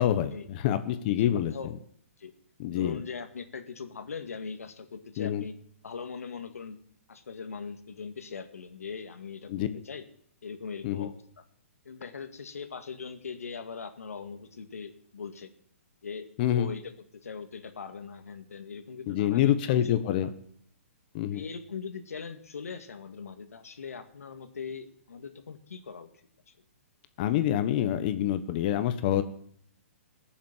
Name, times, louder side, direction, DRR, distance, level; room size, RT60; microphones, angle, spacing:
voice 1, 0.0-1.5 2.6-3.0 5.2-5.4 9.5-9.7 10.8-11.1 16.4-16.7 19.1-20.3 21.1-21.4 27.2-29.2, left 11 dB, 40° left, 11 dB, 1.3 m, -26 dB
voice 2, 1.2-1.7 2.2-2.3 2.7-5.6 5.8-6.8 7.1-10.0 10.4-11.2 11.9-15.5 16.0-16.3 16.5-16.9 17.2-20.0 20.2-20.3 21.3-26.1 26.5-26.6, left 5 dB, 90° left, 8 dB, 2.0 m, -40 dB
18.0 x 7.3 x 7.4 m, 0.64 s
hypercardioid pair, 145°, 8 cm